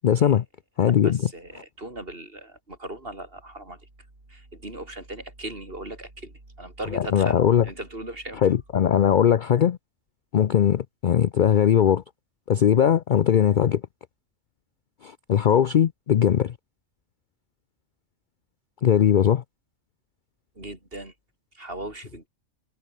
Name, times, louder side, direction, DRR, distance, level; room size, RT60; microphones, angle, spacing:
voice 1, 0.0-0.4 0.8-1.2 6.9-7.6 8.4-9.8 10.3-12.0 12.5-13.8 15.0-16.5 18.8-19.4, left 9 dB, 55° left, 0.5 m, -20 dB
voice 2, 0.9-3.8 4.3-8.5 20.6-21.1 21.5-22.3, right 1 dB, 45° right, 5.7 m, -38 dB
omnidirectional pair, 1.4 m